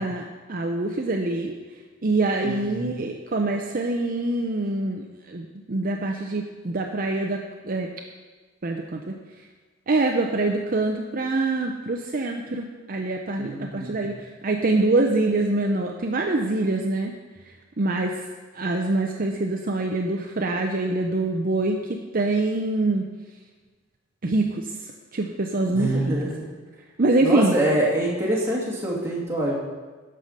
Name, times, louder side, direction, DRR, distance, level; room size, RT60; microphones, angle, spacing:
voice 1, 0.0-1.6 2.0-7.9 8.6-9.2 9.9-17.1 17.8-18.2 18.5-23.1 24.2-24.7 25.1-26.1 27.0-27.5, right 2 dB, 45° right, 2 dB, 0.7 m, -25 dB
voice 2, 2.4-2.9 13.4-14.1 25.7-26.5 27.2-29.5, right 1 dB, 15° right, -6 dB, 2.5 m, -25 dB
11.5 x 5.6 x 6.6 m, 1.4 s
head